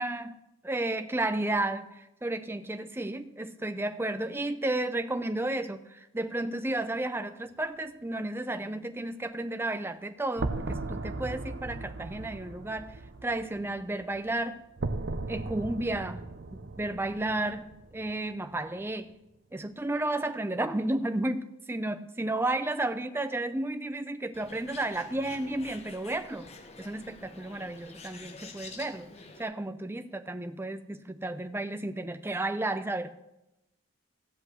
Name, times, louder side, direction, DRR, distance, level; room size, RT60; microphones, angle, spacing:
voice 1, 0.0-14.6 15.3-19.1 19.5-26.5 26.8-29.1 29.4-33.1, right 2 dB, 10° right, 10 dB, 0.5 m, -32 dB
sound 1, 10.4-18.4, right 2 dB, 50° right, 0.6 m, -37 dB
Bird, 24.3-29.4, left 4 dB, 30° left, 0.9 m, -48 dB
14.0 x 5.1 x 7.9 m, 0.92 s
head